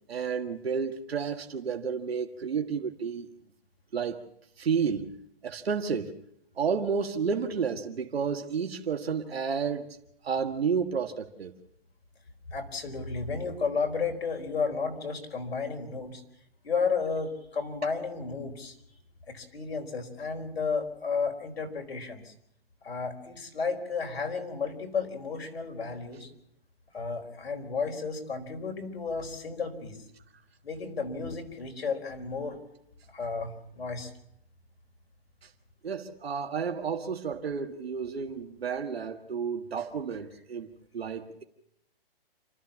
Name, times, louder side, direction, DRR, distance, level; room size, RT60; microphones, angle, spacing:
voice 1, 0.1-3.3 3.9-4.2 4.6-5.1 5.4-6.1 6.6-10.0 10.2-11.5 35.8-40.7 40.9-41.4, right 6 dB, 90° right, 1.8 m, -31 dB
voice 2, 12.5-16.2 16.6-18.7 19.3-22.3 22.8-26.3 26.9-30.0 30.6-32.6 33.1-34.1, left 5 dB, 90° left, 4.6 m, -33 dB
28.0 x 13.5 x 7.3 m
hypercardioid pair, 160°, 30 cm